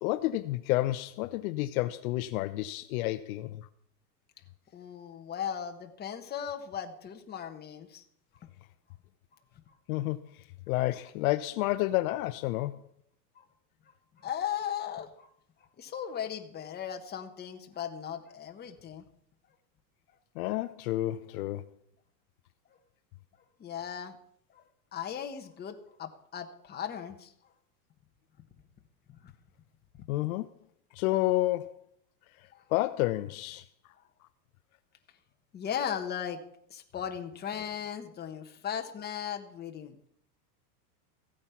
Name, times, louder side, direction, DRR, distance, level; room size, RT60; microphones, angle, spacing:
voice 1, 0.0-3.7 9.9-10.3 10.7-12.8 20.4-21.6 30.1-30.5 30.9-31.8 32.7-33.6, left 17 dB, 60° left, 0.7 m, -30 dB
voice 2, 4.7-8.0 9.7-9.8 13.3-13.4 14.2-15.3 15.8-19.0 23.6-24.2 24.5-24.6 24.9-27.3 29.1-29.3 32.5-32.6 35.5-36.4 36.7-40.1, left 8 dB, 20° left, 1.3 m, -37 dB
15.5 x 8.7 x 5.8 m
supercardioid pair, 140°, 48 cm